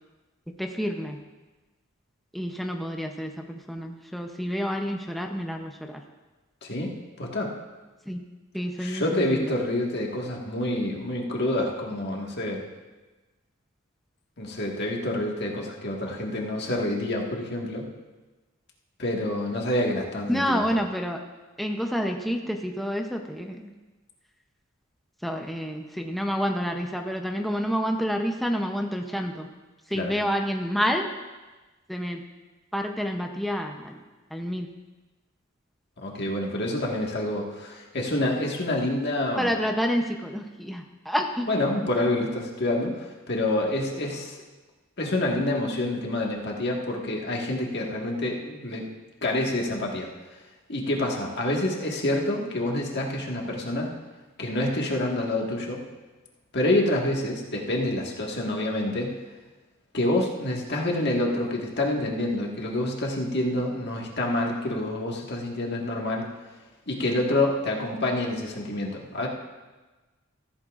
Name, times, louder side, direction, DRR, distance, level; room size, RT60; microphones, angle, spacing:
voice 1, 0.6-1.2 2.3-6.0 8.1-8.2 8.5-9.5 20.3-21.2 21.6-23.7 25.2-29.5 29.9-31.1 31.9-32.2 32.7-34.0 34.3-34.7 39.3-41.5, equal, ahead, 2 dB, 0.6 m, -28 dB
voice 2, 6.6-7.5 8.8-12.6 14.4-17.9 19.0-20.7 29.9-30.1 36.0-39.5 41.5-44.4 45.0-48.9 49.2-50.1 50.7-53.9 54.4-55.8 56.5-59.1 59.9-66.3 66.9-69.3, left 1 dB, 55° left, -1 dB, 1.7 m, -27 dB
15.0 x 14.0 x 2.5 m, 1.2 s
head